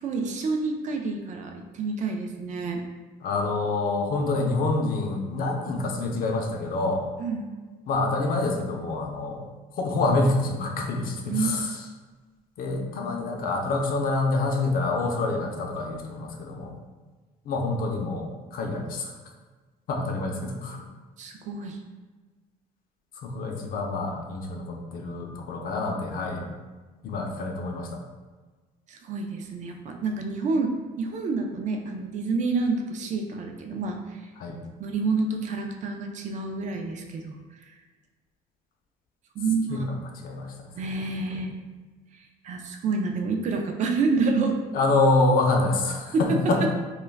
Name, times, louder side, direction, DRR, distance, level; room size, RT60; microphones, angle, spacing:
voice 1, 0.0-2.8 7.2-7.5 11.3-11.5 21.2-21.8 28.9-30.7 31.0-34.2 34.8-37.3 39.4-39.8 40.7-41.5 42.4-44.6 46.1-46.2, right 4 dB, 45° right, 3 dB, 0.4 m, -28 dB
voice 2, 3.2-7.0 7.9-9.4 9.8-11.8 12.6-16.7 17.4-19.1 19.9-20.8 23.2-26.5 27.0-27.9 34.4-34.6 39.7-39.9 40.2-40.5 40.8-41.0 41.3-41.5 44.7-46.7, left 2 dB, 60° left, 2 dB, 0.5 m, -26 dB
2.2 x 2.2 x 3.3 m, 1.3 s
cardioid pair, 110°, 17 cm